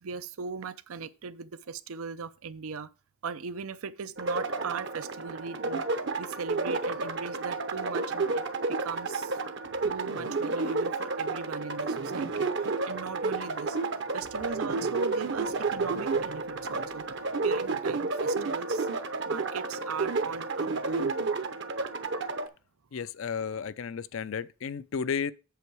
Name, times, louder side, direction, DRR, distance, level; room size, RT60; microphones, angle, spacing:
voice 1, 0.0-2.9 3.2-5.9 6.2-8.4 8.7-9.4 9.8-13.8 14.1-18.9 19.3-21.3, right 5 dB, 80° right, 0.6 m, -39 dB
sound 1, 4.2-22.5, right 3 dB, 55° right, 0.8 m, -31 dB
voice 2, 22.9-25.3, left 6 dB, 65° left, 0.4 m, -33 dB
8.2 x 6.8 x 4.7 m
head